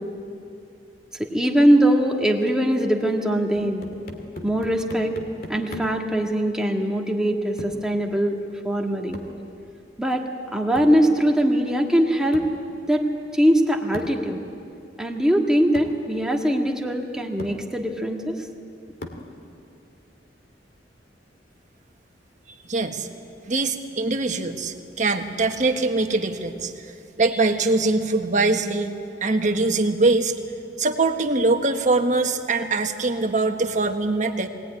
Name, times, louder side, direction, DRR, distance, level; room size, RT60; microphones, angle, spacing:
voice 1, 1.1-3.9 4.4-5.1 5.5-8.4 8.6-9.2 10.0-12.5 12.9-13.1 13.3-14.4 15.0-18.4, equal, 5° right, 1 dB, 1.8 m, -21 dB
sound 1, 3.5-6.1 7.6-7.9 9.1-9.4 10.8-11.1 12.3-12.6 13.9-14.3 15.2-15.3 15.7-16.0 16.9-17.0 17.4-17.7 19.0-19.4, left 1 dB, 55° left, 2.3 m, -39 dB
voice 2, 22.6-23.1 23.5-26.9 27.2-30.3 30.8-34.5, right 3 dB, 45° right, 5 dB, 1.5 m, -23 dB
22.5 x 18.5 x 9.8 m, 2.6 s
head